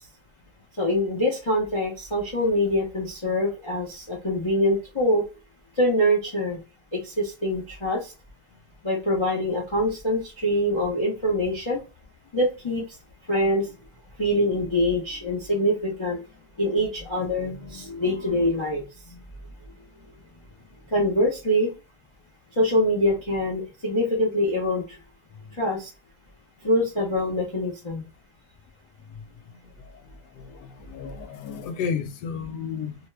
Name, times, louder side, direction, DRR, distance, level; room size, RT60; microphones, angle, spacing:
voice 1, 0.8-5.2 5.8-6.6 6.9-8.1 8.8-11.8 12.3-12.8 13.3-13.7 14.2-16.2 16.6-18.8 19.1-19.2 20.9-21.7 22.6-24.8 25.6-25.9 26.6-28.0, equal, 50° left, 0.3 m, -24 dB
voice 2, 29.8-33.0, left 6 dB, 80° left, 1.2 m, -33 dB
2.9 x 2.2 x 3.2 m
omnidirectional pair, 1.8 m